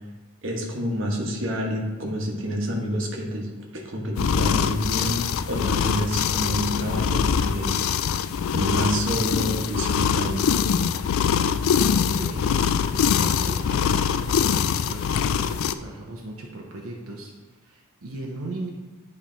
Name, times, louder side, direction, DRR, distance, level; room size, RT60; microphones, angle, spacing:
voice 1, 0.4-7.8 8.5-10.4, equal, 60° right, 0 dB, 1.2 m, -28 dB
sound 1, 4.2-15.7, left 7 dB, 70° left, 0.3 m, -23 dB
voice 2, 11.3-18.7, right 2 dB, 85° right, -1 dB, 0.8 m, -38 dB
9.9 x 3.3 x 4.4 m, 1.3 s
head